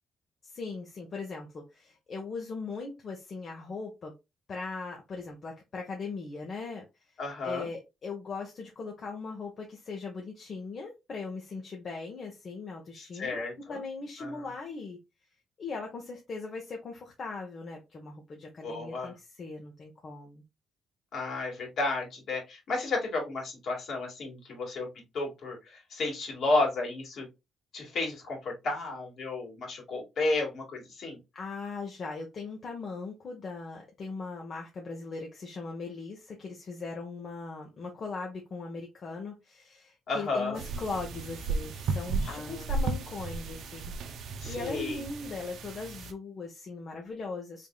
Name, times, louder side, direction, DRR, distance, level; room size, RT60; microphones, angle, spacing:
voice 1, 0.4-4.1 4.5-6.8 7.4-13.4 13.7-15.0 15.6-20.4 31.3-47.7, left 4 dB, 50° left, 0 dB, 1.0 m, -39 dB
voice 2, 7.2-7.7 13.0-13.8 14.2-14.4 18.6-19.1 21.1-24.9 25.1-27.3 27.7-31.2 40.1-40.6 42.2-42.7 44.4-45.0, left 2 dB, 65° left, -1 dB, 2.1 m, -32 dB
sound 1, 40.5-46.1, right 3 dB, 75° right, 0.6 m, -34 dB
3.6 x 3.6 x 2.3 m, 0.24 s
cardioid pair, 90°, 0 cm